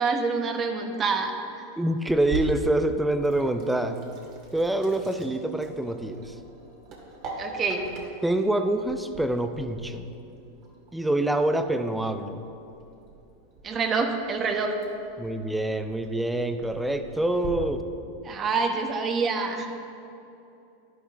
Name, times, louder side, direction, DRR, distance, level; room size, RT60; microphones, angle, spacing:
voice 1, 0.0-1.3 7.4-7.8 13.6-14.7 18.2-19.7, right 4 dB, 30° right, 4 dB, 1.2 m, -26 dB
voice 2, 1.8-4.0 4.5-6.4 8.2-10.1 10.9-12.4 15.2-17.8, right 1 dB, 5° right, 8 dB, 0.6 m, -26 dB
Sink (filling or washing), 2.1-17.5, right 2 dB, 45° right, 2.3 m, -43 dB
11.0 x 11.0 x 3.7 m, 2.8 s
hypercardioid pair, 120°, 0 cm